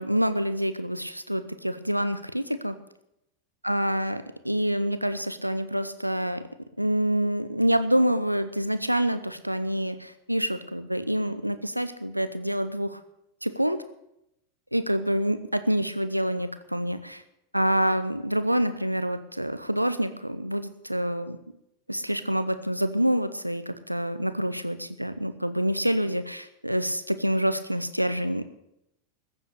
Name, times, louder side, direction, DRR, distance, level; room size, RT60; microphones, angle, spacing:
voice 1, 0.0-2.7 3.6-6.4 6.8-13.0 13.4-13.8 14.7-17.2 17.5-21.4 21.9-28.4, equal, 90° right, 11 dB, 0.8 m, -27 dB
15.0 x 7.7 x 8.2 m, 0.82 s
figure-of-eight pair, 90°, 0 cm